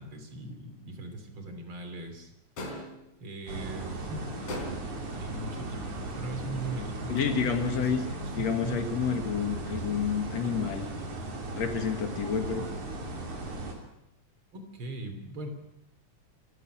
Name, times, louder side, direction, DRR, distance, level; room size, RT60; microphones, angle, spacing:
voice 1, 0.0-2.3 3.2-4.3 5.1-8.8 14.5-15.5, right 2 dB, 45° right, 6 dB, 3.8 m, -40 dB
sound 1, 2.6-3.1 4.5-5.1, left 1 dB, 85° left, 4.9 m, -38 dB
sound 2, 3.5-13.7, right 2 dB, 75° right, 4.7 m, -37 dB
voice 2, 7.1-8.0 8.3-10.9 11.5-12.6, left 6 dB, 65° left, 5 dB, 3.0 m, -29 dB
28.0 x 15.0 x 6.2 m, 0.85 s
omnidirectional pair, 3.4 m